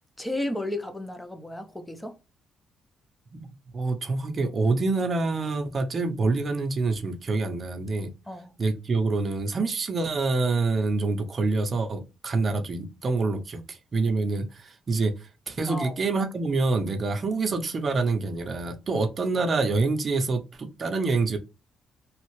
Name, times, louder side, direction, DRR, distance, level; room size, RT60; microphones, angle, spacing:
voice 1, 0.2-2.1 8.3-8.5 15.7-15.9, left 1 dB, 10° left, 0.7 m, -33 dB
voice 2, 3.7-8.1 8.6-15.1 15.5-21.4, right 3 dB, 40° right, 0.7 m, -26 dB
3.2 x 2.4 x 3.1 m
cardioid pair, 90°, 0 cm